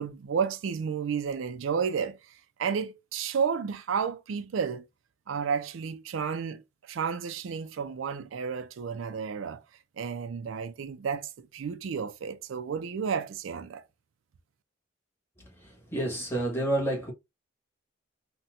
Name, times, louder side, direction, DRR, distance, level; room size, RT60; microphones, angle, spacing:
voice 1, 0.0-4.9 5.3-9.6 10.0-13.8, right 6 dB, 85° right, 0.4 m, -32 dB
voice 2, 15.9-17.1, right 1 dB, 10° left, 1.3 m, -28 dB
4.1 x 2.2 x 2.4 m
head